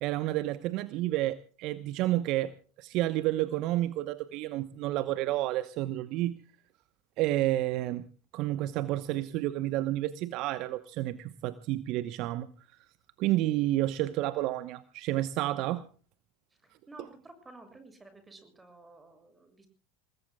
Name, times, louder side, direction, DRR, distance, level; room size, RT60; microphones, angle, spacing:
voice 1, 0.0-6.4 7.2-8.0 8.3-12.5 13.2-15.8, right 15 dB, 50° right, 1.0 m, -30 dB
voice 2, 16.6-19.7, right 2 dB, 15° right, 7.3 m, -53 dB
28.5 x 20.5 x 2.3 m
hypercardioid pair, 80°, 0 cm